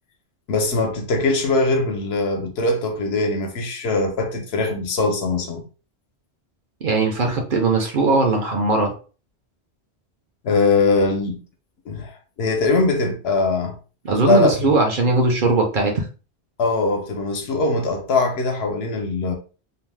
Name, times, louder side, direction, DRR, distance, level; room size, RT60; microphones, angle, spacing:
voice 1, 0.5-5.6 10.4-11.4 11.9-13.8 14.2-14.8 16.6-19.4, left 3 dB, 70° left, 0.8 m, -21 dB
voice 2, 6.8-8.9 14.0-16.0, right 3 dB, 55° right, 0.7 m, -19 dB
2.6 x 2.0 x 3.2 m
omnidirectional pair, 1.1 m